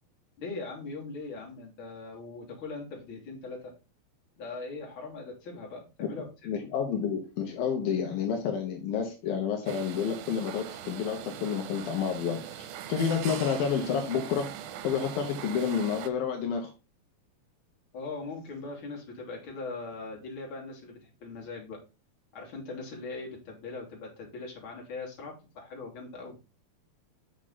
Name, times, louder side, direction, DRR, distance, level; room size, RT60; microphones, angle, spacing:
voice 1, 0.4-3.7 4.4-6.5 17.9-21.8 22.3-26.4, left 3 dB, 35° left, -1 dB, 3.0 m, -40 dB
voice 2, 6.5-14.5 14.8-16.7, left 7 dB, 75° left, 3 dB, 2.9 m, -30 dB
sound 1, 9.7-16.1, right 10 dB, 90° right, 2.5 m, -41 dB
6.4 x 6.2 x 4.0 m, 0.30 s
omnidirectional pair, 4.3 m